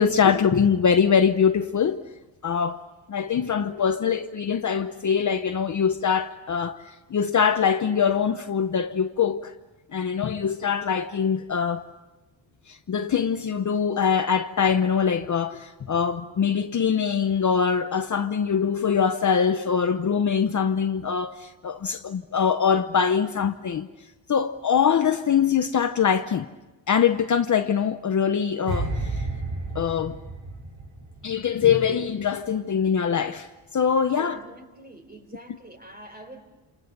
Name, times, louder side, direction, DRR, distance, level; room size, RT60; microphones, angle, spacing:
voice 1, 0.0-2.0 2.4-2.8 3.1-9.5 9.9-11.8 12.7-23.9 24.3-26.5 26.9-29.3 29.7-30.2 31.2-33.5 33.7-34.4, left 7 dB, 40° left, 0.9 m, -23 dB
sound 1, 28.7-31.9 32.1-32.4, right 2 dB, 90° right, 7.2 m, -32 dB
voice 2, 34.1-36.4, right 1 dB, 20° right, 4.1 m, -45 dB
29.0 x 28.0 x 6.8 m
cardioid pair, 140°, 47 cm